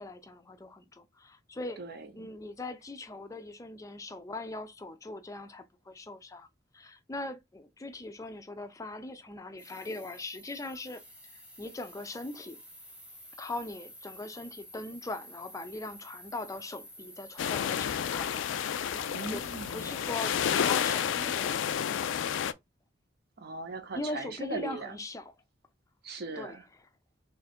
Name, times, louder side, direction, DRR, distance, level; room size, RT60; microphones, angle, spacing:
voice 1, 0.0-1.8 2.1-6.5 6.7-11.0 11.6-12.6 13.4-18.3 19.3-19.4 19.7-21.8 23.9-25.3 26.3-26.9, left 2 dB, 20° left, 0.4 m, -40 dB
voice 2, 1.8-2.3 19.1-19.9 23.4-25.0 26.0-26.7, right 3 dB, 60° right, 0.7 m, -39 dB
sound 1, 9.6-21.7, equal, 5° right, 1.0 m, -51 dB
sound 2, 17.4-22.5, left 8 dB, 85° left, 0.3 m, -30 dB
3.1 x 2.4 x 4.2 m
head